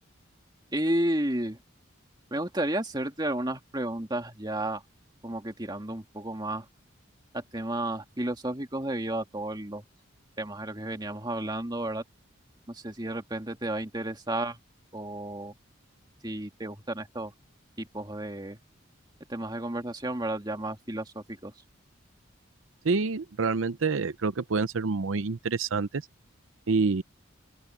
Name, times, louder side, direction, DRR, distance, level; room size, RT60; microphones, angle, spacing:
voice 1, 0.7-1.6 2.3-4.8 5.2-6.7 7.3-9.8 10.4-12.0 12.7-14.6 14.9-15.5 16.2-17.3 17.8-18.6 19.3-21.5, right 1 dB, 20° right, 2.2 m, -32 dB
voice 2, 22.8-26.0 26.7-27.0, right 4 dB, 85° right, 0.7 m, -27 dB
open air
head